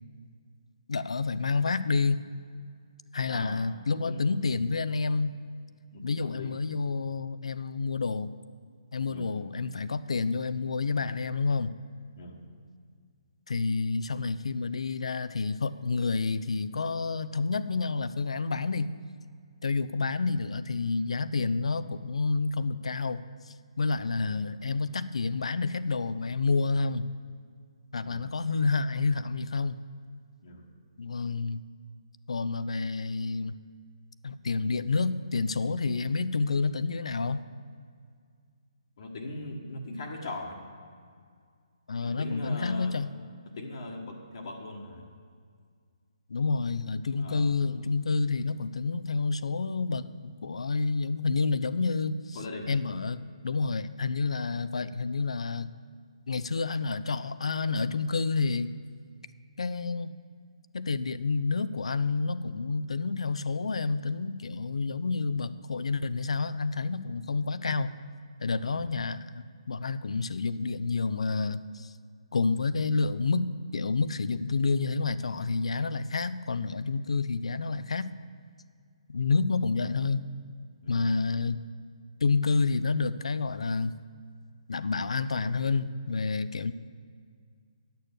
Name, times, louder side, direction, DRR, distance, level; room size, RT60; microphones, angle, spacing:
voice 1, 0.9-2.3 3.1-5.4 6.0-8.3 8.9-11.7 13.5-18.9 19.6-27.1 27.9-29.8 31.0-31.6 32.3-33.6 34.2-37.4 41.9-43.1 46.3-52.4 52.7-55.7 56.3-58.7 59.6-60.1 60.7-67.9 68.4-71.9 72.3-73.5 73.7-78.1 79.1-80.3 80.9-81.6 82.2-83.9 84.7-86.7, left 4 dB, 75° left, 14 dB, 0.4 m, -29 dB
voice 2, 3.3-3.7 4.1-4.7 5.9-6.6 9.1-9.3 12.2-12.4 28.0-28.3 30.4-30.7 39.0-40.6 42.0-43.0 43.5-45.0 47.2-47.5 52.3-52.7 68.6-68.9 80.8-81.3, left 2 dB, 55° left, 1 dB, 1.3 m, -40 dB
10.0 x 6.8 x 6.5 m, 2.1 s
figure-of-eight pair, 145°, 3 cm